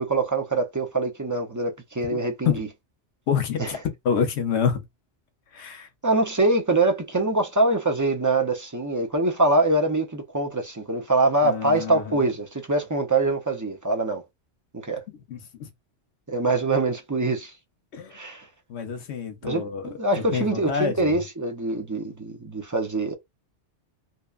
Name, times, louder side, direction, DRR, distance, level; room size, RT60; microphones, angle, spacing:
voice 1, 0.0-2.7 3.6-3.7 6.0-14.2 14.7-15.0 16.3-17.5 18.1-18.5 19.4-23.1, right 2 dB, 30° right, 0.3 m, -24 dB
voice 2, 3.3-4.8 5.5-5.9 11.4-12.3 15.3-15.7 17.9-18.2 18.7-21.2, left 7 dB, 70° left, 1.0 m, -27 dB
2.8 x 2.2 x 2.3 m
omnidirectional pair, 1.2 m